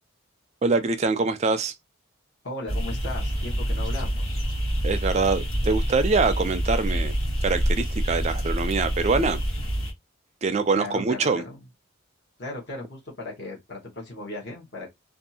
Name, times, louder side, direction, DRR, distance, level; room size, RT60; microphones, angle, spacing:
voice 1, 0.6-1.7 4.8-7.1 7.4-9.4 10.4-11.4, right 4 dB, 30° right, 0.3 m, -24 dB
voice 2, 2.4-4.4 10.7-11.7 12.4-14.9, left 2 dB, 50° left, 1.0 m, -37 dB
sound 1, 2.7-9.9, equal, 70° left, 1.2 m, -27 dB
2.6 x 2.4 x 2.7 m
head